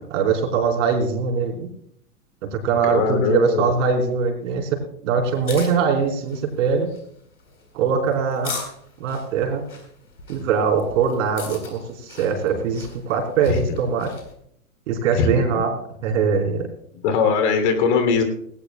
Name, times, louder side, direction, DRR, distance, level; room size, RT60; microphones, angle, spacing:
voice 1, 0.1-1.7 2.4-6.9 7.7-8.6 9.0-9.6 10.3-14.1 14.9-15.7 16.0-16.7, right 5 dB, 60° right, 2 dB, 4.2 m, -22 dB
voice 2, 2.8-3.7 13.5-13.8 15.1-15.7 17.0-18.2, left 5 dB, 50° left, 7 dB, 2.9 m, -21 dB
sound 1, 5.3-14.3, left 4 dB, 90° left, 4.3 m, -40 dB
18.5 x 18.0 x 2.2 m, 0.67 s
hypercardioid pair, 115°, 44 cm